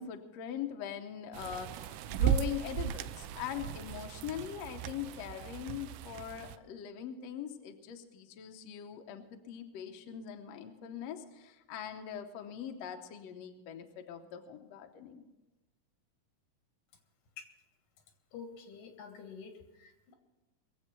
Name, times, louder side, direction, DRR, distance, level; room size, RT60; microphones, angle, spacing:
voice 1, 0.0-15.3, left 9 dB, 65° left, 5 dB, 1.9 m, -42 dB
sound 1, 1.3-6.6, right 9 dB, 80° right, 1.9 m, -36 dB
voice 2, 18.3-20.1, left 6 dB, 85° left, 5 dB, 3.3 m, -48 dB
21.5 x 8.0 x 6.0 m, 1.1 s
omnidirectional pair, 3.7 m